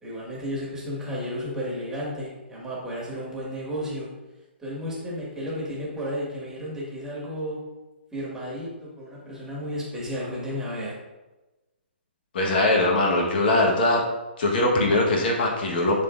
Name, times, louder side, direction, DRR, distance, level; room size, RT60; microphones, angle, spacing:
voice 1, 0.0-4.1 4.6-7.6 8.1-11.0, equal, 10° right, -5 dB, 2.0 m, -33 dB
voice 2, 12.3-14.0 14.4-16.0, left 2 dB, 55° left, -1 dB, 1.5 m, -21 dB
10.5 x 4.0 x 2.6 m, 1.1 s
hypercardioid pair, 145°, 6 cm